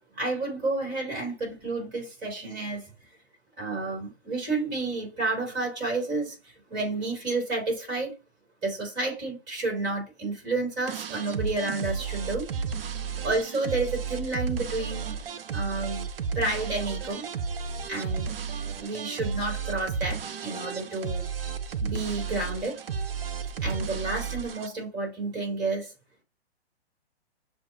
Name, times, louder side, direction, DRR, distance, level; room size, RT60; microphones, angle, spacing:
voice 1, 0.1-2.9 3.6-8.1 8.6-12.5 13.2-15.2 15.5-16.0 16.3-17.3 17.9-18.3 18.8-21.2 21.8-22.8 23.6-25.9, right 3 dB, 30° right, 3.0 m, -30 dB
sound 1, 10.9-24.7, right 6 dB, 60° right, 0.6 m, -33 dB
7.0 x 2.4 x 2.9 m
figure-of-eight pair, 125°, 33 cm